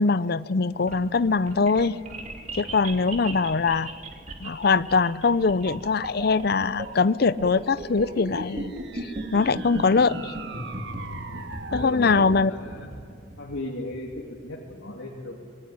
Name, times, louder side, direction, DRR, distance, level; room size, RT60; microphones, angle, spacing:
voice 1, 0.0-2.0 2.5-3.9 4.4-10.3 11.7-12.5, left 4 dB, 55° left, 16 dB, 0.5 m, -22 dB
sound 1, 0.6-14.7, right 1 dB, 40° right, 2.6 m, -37 dB
sound 2, 8.0-12.3, right 4 dB, 60° right, 1.6 m, -41 dB
voice 2, 11.3-12.9 13.4-15.4, left 1 dB, 85° left, -2 dB, 2.8 m, -36 dB
27.5 x 20.0 x 9.9 m, 2.3 s
head